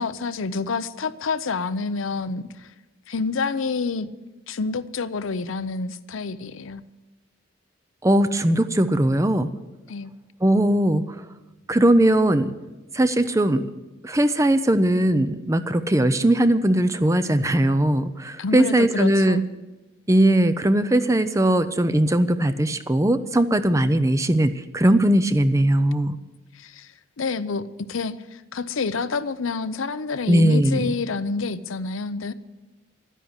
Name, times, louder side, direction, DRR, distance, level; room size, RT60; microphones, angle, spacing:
voice 1, 0.0-2.7 3.1-4.1 4.5-6.8 9.9-10.1 18.4-19.4 26.5-26.9 27.2-27.6 27.9-32.3, left 4 dB, 80° left, 0.6 m, -28 dB
voice 2, 8.0-9.5 10.4-11.0 11.7-12.5 12.9-13.7 14.0-19.4 20.1-26.2 30.3-30.9, right 1 dB, 15° right, 0.5 m, -19 dB
12.5 x 10.0 x 8.0 m
head